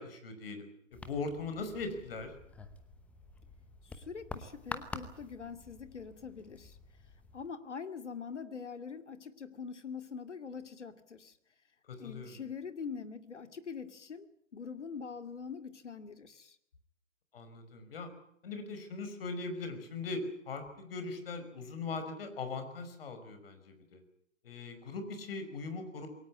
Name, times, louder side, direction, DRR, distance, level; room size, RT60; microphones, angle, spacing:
voice 1, 0.0-2.3 11.9-12.4 17.3-18.1 18.4-24.0 24.4-26.1, left 3 dB, 50° left, 8 dB, 5.5 m, -40 dB
sound 1, 0.9-7.5, left 3 dB, 5° left, 0.9 m, -48 dB
voice 2, 3.8-6.8 7.3-11.4 12.0-14.3 14.5-16.6, left 6 dB, 65° left, 9 dB, 2.5 m, -44 dB
22.5 x 18.0 x 9.7 m, 0.72 s
figure-of-eight pair, 135°, 38 cm